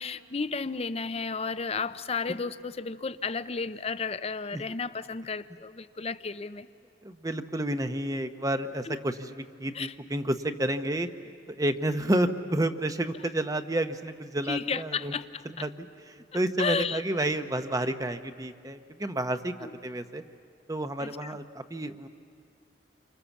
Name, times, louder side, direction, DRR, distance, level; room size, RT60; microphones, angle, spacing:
voice 1, 0.0-6.7 8.8-8.9 9.7-9.9 14.5-15.7 16.6-17.0 19.6-19.7 21.0-21.4, left 5 dB, 35° left, 13 dB, 0.6 m, -33 dB
voice 2, 7.0-11.1 11.5-15.1 15.6-15.7 16.1-20.2 20.7-22.1, right 1 dB, 20° right, 8 dB, 0.9 m, -30 dB
28.5 x 25.5 x 7.2 m, 2.2 s
head